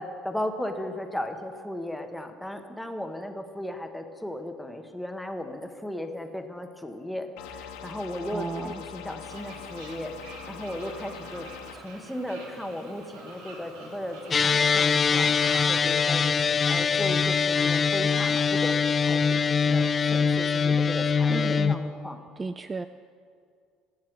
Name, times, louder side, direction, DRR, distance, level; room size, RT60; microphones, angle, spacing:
voice 1, 0.0-11.5 11.7-22.2, left 1 dB, 5° left, 5 dB, 1.3 m, -36 dB
sound 1, 7.4-11.8, left 8 dB, 80° left, 1.0 m, -42 dB
voice 2, 8.3-8.8 21.3-21.7 22.4-22.9, right 4 dB, 25° right, 11 dB, 0.4 m, -33 dB
Fowl, 9.2-15.7, right 2 dB, 85° right, 2.0 m, -45 dB
sound 2, 14.3-21.8, left 5 dB, 35° left, 0.6 m, -23 dB
18.5 x 7.4 x 4.6 m, 2.2 s
hypercardioid pair, 75°, 0 cm